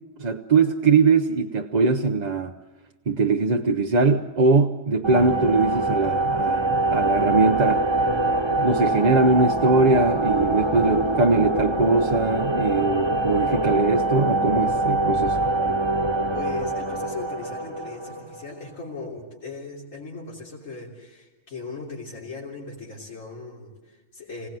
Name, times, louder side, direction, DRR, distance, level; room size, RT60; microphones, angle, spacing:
voice 1, 0.2-2.5 3.1-7.8 8.5-15.4, right 3 dB, 40° right, 4 dB, 0.8 m, -21 dB
sound 1, 5.0-18.6, right 2 dB, 20° right, 1.3 m, -24 dB
voice 2, 16.3-24.5, left 4 dB, 85° left, -4 dB, 3.8 m, -38 dB
26.0 x 17.0 x 7.7 m, 1.2 s
omnidirectional pair, 1.3 m